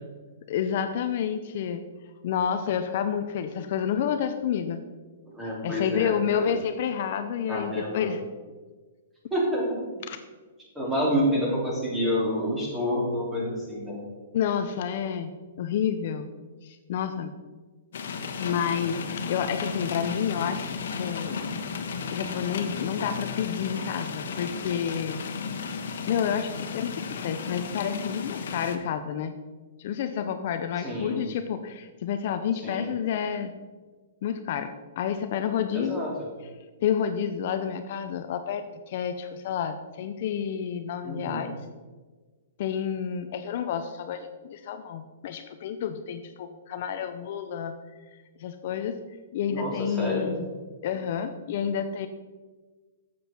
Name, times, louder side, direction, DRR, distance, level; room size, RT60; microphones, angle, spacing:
voice 1, 0.5-1.8 2.2-4.8 5.6-8.2 10.1-10.2 14.3-15.3 15.6-16.3 16.6-17.3 18.4-20.6 21.0-21.4 22.1-25.2 26.1-29.3 29.8-33.5 34.2-36.0 36.8-41.5 42.6-47.7 48.4-49.0 49.3-50.5 50.8-52.1, left 8 dB, 50° left, 9 dB, 0.6 m, -29 dB
voice 2, 5.3-6.5 7.5-8.1 9.3-9.8 10.7-14.0 30.8-31.2 32.5-32.9 35.7-36.3 41.0-41.5 49.5-50.3, equal, 10° right, -4 dB, 3.0 m, -28 dB
sound 1, 17.9-28.8, left 5 dB, 70° left, 1.2 m, -34 dB
9.2 x 7.7 x 4.4 m, 1.4 s
hypercardioid pair, 155°, 0 cm